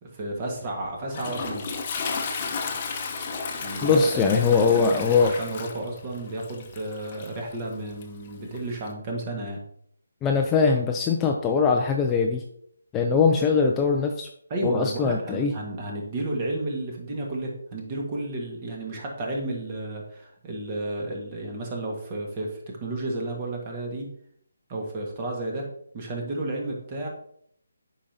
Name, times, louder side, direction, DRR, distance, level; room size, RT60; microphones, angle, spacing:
voice 1, 0.0-1.7 3.6-9.6 14.5-24.1 24.7-25.7 25.9-27.1, right 2 dB, 30° right, 0 dB, 1.6 m, -32 dB
Toilet flush, 0.6-8.9, left 5 dB, 30° left, 0.9 m, -34 dB
voice 2, 3.8-5.3 10.2-12.4 12.9-14.3 14.6-15.5, left 5 dB, 15° left, 1 dB, 0.5 m, -21 dB
8.4 x 5.0 x 2.8 m, 0.67 s
figure-of-eight pair, 150°, 0 cm